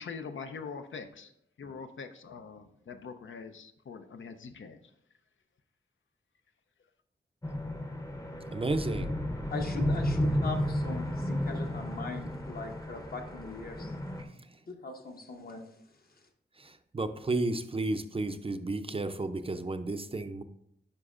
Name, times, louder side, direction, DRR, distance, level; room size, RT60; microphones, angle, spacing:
voice 1, 0.0-1.3 1.6-4.8, left 5 dB, 85° left, 8 dB, 0.5 m, -43 dB
sound 1, 7.4-14.2, left 1 dB, 15° left, 0.6 m, -33 dB
voice 2, 8.5-9.1 14.2-14.3 16.6-20.4, right 2 dB, 30° right, 9 dB, 0.4 m, -32 dB
voice 3, 9.5-13.9 14.7-15.6, left 3 dB, 50° left, 4 dB, 0.9 m, -40 dB
9.8 x 5.3 x 2.4 m, 0.73 s
wide cardioid pair, 105°, 19 cm